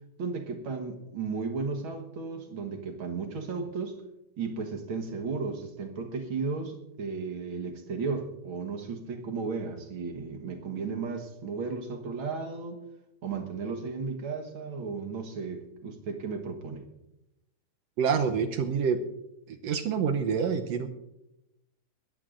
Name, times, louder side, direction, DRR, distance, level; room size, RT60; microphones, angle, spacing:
voice 1, 0.2-4.0 4.4-12.8 13.2-16.9, right 4 dB, 50° right, 5 dB, 1.7 m, -34 dB
voice 2, 18.0-19.0 19.5-20.9, right 6 dB, 70° right, 6 dB, 1.6 m, -27 dB
21.0 x 14.5 x 2.6 m, 0.88 s
omnidirectional pair, 3.6 m